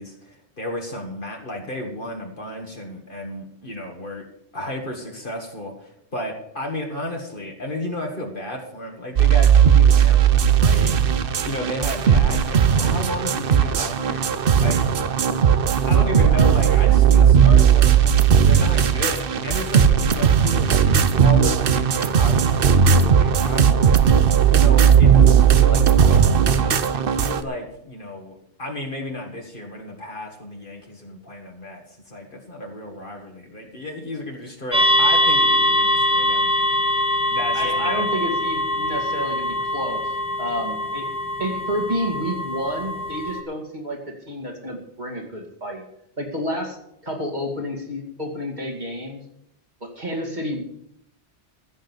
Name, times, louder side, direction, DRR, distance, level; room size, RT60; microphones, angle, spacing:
voice 1, 0.0-4.2 4.5-10.9 11.4-14.3 14.6-14.8 15.6-18.2 18.5-20.8 21.2-23.8 24.5-36.7 37.3-38.2, left 1 dB, 50° left, 1 dB, 2.0 m, -33 dB
sound 1, 9.2-27.4, right 8 dB, 55° right, 0.9 m, -16 dB
sound 2, 34.7-43.4, left 1 dB, 5° right, 1.7 m, -22 dB
voice 2, 37.5-41.1 41.4-45.8 46.2-49.2 49.8-50.7, equal, 40° right, -1 dB, 2.6 m, -30 dB
15.0 x 6.5 x 8.2 m, 0.77 s
omnidirectional pair, 1.1 m